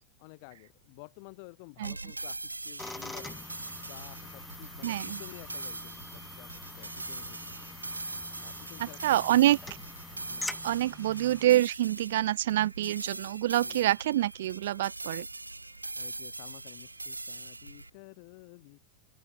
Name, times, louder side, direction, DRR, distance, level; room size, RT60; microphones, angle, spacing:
voice 1, 0.2-7.6 8.4-9.4 10.3-10.6 13.6-13.8 15.9-18.8, left 32 dB, 45° left, 6.2 m, -52 dB
sound 1, 1.8-17.9, right 2 dB, 85° right, 1.3 m, -42 dB
sound 2, 2.8-11.5, left 2 dB, 5° left, 6.7 m, -44 dB
voice 2, 4.8-5.2 8.8-9.6 10.6-15.3, right 14 dB, 55° right, 0.9 m, -26 dB
open air
figure-of-eight pair, 90°, 0 cm